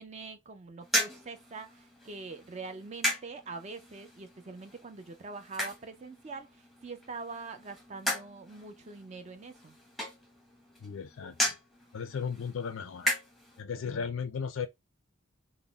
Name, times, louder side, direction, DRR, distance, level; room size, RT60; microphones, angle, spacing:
voice 1, 0.0-6.5 6.8-9.8 13.8-14.0, right 4 dB, 30° right, 0.4 m, -44 dB
sound 1, 0.8-13.6, equal, ahead, 0.8 m, -37 dB
voice 2, 10.8-11.6 11.9-13.1 13.6-14.7, left 6 dB, 75° left, 0.4 m, -36 dB
4.0 x 2.0 x 3.3 m
head